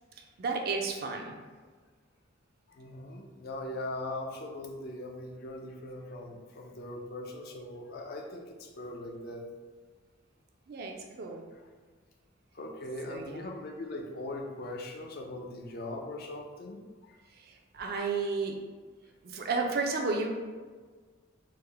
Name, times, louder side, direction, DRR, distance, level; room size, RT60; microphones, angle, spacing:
voice 1, 0.4-1.4 10.7-11.4 13.1-13.4 17.7-18.6 19.2-20.3, right 4 dB, 50° right, 2 dB, 0.4 m, -32 dB
voice 2, 2.7-9.5 12.5-17.2 17.9-18.0, left 1 dB, 50° left, 2 dB, 0.4 m, -40 dB
3.5 x 2.1 x 3.2 m, 1.5 s
head